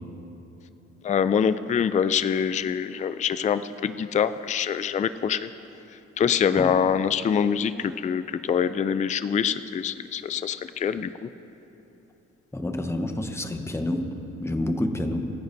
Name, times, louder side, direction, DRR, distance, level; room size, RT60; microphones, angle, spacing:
voice 1, 1.0-5.5 6.2-11.3, left 7 dB, 25° left, 13 dB, 0.4 m, -25 dB
voice 2, 12.5-14.1 14.4-15.3, left 1 dB, 10° left, 5 dB, 1.0 m, -28 dB
25.5 x 10.5 x 2.7 m, 3.0 s
cardioid pair, 90°, 30 cm